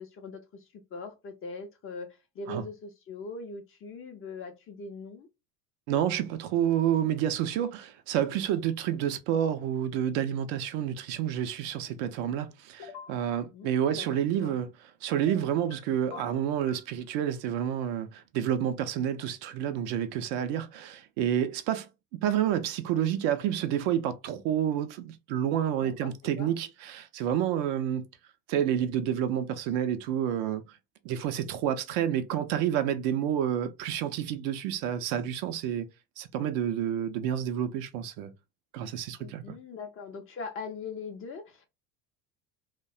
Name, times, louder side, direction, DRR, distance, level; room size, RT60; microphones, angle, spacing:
voice 1, 0.0-5.3 13.5-14.6 25.8-26.5 39.2-41.7, left 4 dB, 25° left, 0.5 m, -41 dB
voice 2, 5.9-14.7 15.0-21.9 22.2-28.1 28.5-30.8 31.0-35.9 36.2-38.3 38.7-39.4, right 10 dB, 50° right, 0.5 m, -29 dB
sound 1, 12.8-13.2 15.2-15.8 16.1-16.9, left 6 dB, 60° left, 0.8 m, -44 dB
2.6 x 2.1 x 2.3 m
figure-of-eight pair, 70°, 50 cm